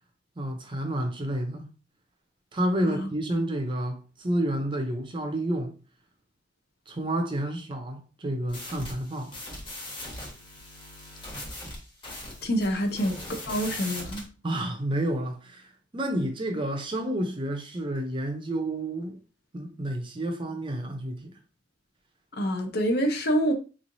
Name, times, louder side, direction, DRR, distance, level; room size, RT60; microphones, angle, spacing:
voice 1, 0.4-1.7 2.5-5.7 6.9-9.3 14.4-19.2 19.5-21.3, right 1 dB, 25° right, 0.6 m, -30 dB
sound 1, 8.5-14.3, left 1 dB, 25° left, 1.2 m, -40 dB
voice 2, 12.4-13.2 13.5-14.2 22.3-23.5, equal, 55° left, 0.7 m, -26 dB
3.6 x 3.1 x 2.6 m
head